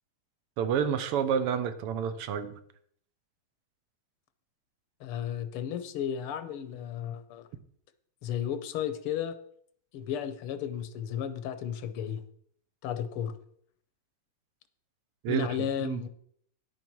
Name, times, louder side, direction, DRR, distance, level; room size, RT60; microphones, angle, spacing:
voice 1, 0.6-2.5 15.2-16.1, right 8 dB, 85° right, 11 dB, 1.9 m, -29 dB
voice 2, 5.0-7.5 8.2-9.4 9.9-12.2 12.8-13.4 15.3-16.1, left 9 dB, 90° left, 11 dB, 1.8 m, -33 dB
10.5 x 8.4 x 4.6 m, 0.64 s
omnidirectional pair, 2.4 m